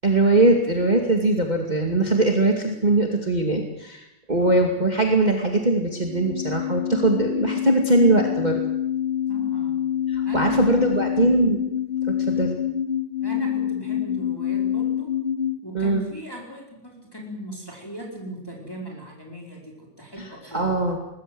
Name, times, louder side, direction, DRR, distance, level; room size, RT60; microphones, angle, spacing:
voice 1, 0.0-8.6 10.1-11.6 12.3-12.6 15.7-16.1 20.2-21.0, right 2 dB, 20° right, 2 dB, 2.4 m, -21 dB
voice 2, 4.4-4.7 9.3-9.8 10.2-11.1 13.2-15.1 15.6-21.0, equal, 10° left, -1 dB, 4.6 m, -38 dB
sound 1, 6.0-15.6, left 10 dB, 40° left, 1.0 m, -26 dB
24.0 x 19.5 x 7.9 m, 0.84 s
omnidirectional pair, 2.0 m